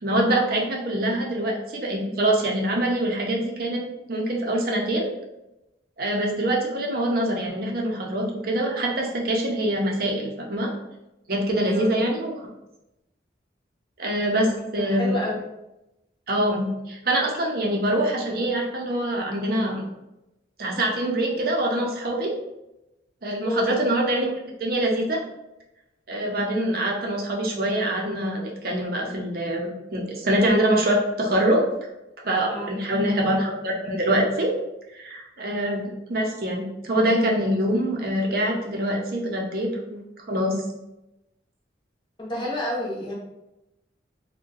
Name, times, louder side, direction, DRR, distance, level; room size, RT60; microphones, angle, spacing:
voice 1, 0.0-5.1 6.0-10.7 11.3-12.5 14.0-15.2 16.3-19.9 20.6-22.3 23.2-24.3 24.6-25.2 26.1-31.6 32.2-34.5 34.9-35.8 36.1-40.6, right 1 dB, 50° right, 0 dB, 0.6 m, -24 dB
voice 2, 14.5-15.4 23.4-23.7 32.5-32.7 42.2-43.1, left 1 dB, 25° left, -5 dB, 0.7 m, -29 dB
2.6 x 2.2 x 3.8 m, 0.93 s
head